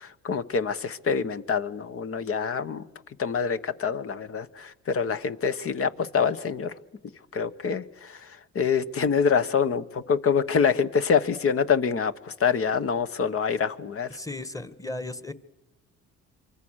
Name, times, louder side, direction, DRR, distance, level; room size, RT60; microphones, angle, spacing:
voice 1, 0.0-2.8 3.2-6.7 7.3-8.3 8.5-14.1, left 6 dB, 45° left, 1.3 m, -26 dB
voice 2, 14.1-15.3, left 2 dB, 10° left, 1.6 m, -35 dB
26.5 x 24.0 x 6.5 m
cardioid pair, 90°, 31 cm